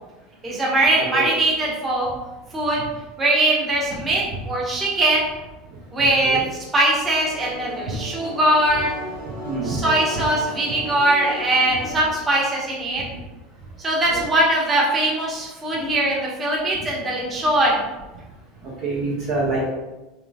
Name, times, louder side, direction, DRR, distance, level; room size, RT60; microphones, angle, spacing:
voice 1, 0.4-2.1 2.5-2.8 3.2-5.3 5.9-6.4 6.7-8.9 9.7-13.0 13.8-17.8, right 1 dB, 20° right, -4 dB, 1.1 m, -21 dB
voice 2, 1.0-1.3 4.3-4.4 6.0-6.5 7.9-8.0 9.5-9.8 10.1-10.3 14.1-14.2 18.6-19.7, right 2 dB, 50° right, -5 dB, 0.8 m, -26 dB
sound 1, 7.0-12.1, right 1 dB, 75° right, 0.9 m, -35 dB
3.8 x 2.9 x 2.3 m, 1.1 s
figure-of-eight pair, 75°, 0 cm